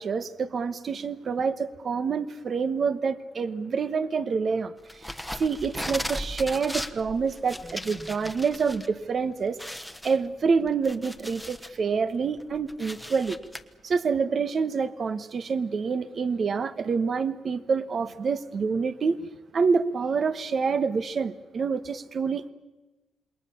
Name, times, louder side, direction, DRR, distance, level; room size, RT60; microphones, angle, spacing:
voice 1, 0.0-13.4 13.8-19.2 19.5-22.5, right 5 dB, 45° right, 1.3 m, -27 dB
sound 1, 4.9-8.9 9.2-9.3 9.6-11.8 12.2-13.6, left 1 dB, ahead, 1.3 m, -37 dB
27.5 x 21.5 x 7.2 m
cardioid pair, 110°, 0 cm